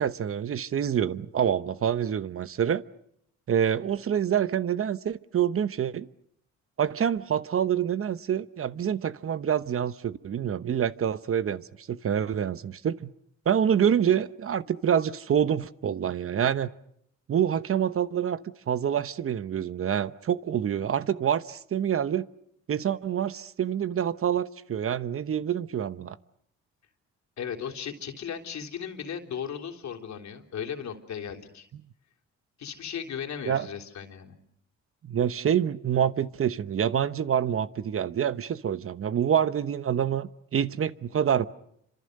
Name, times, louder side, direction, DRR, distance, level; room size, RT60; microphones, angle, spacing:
voice 1, 0.0-2.8 3.5-6.1 6.8-13.1 13.4-16.7 17.3-18.4 18.7-22.3 22.7-26.2 33.5-33.7 35.1-41.5, right 9 dB, 45° right, 1.0 m, -26 dB
voice 2, 27.4-31.7 32.6-34.3, left 8 dB, 65° left, 3.4 m, -36 dB
28.5 x 26.0 x 6.6 m
cardioid pair, 90°, 30 cm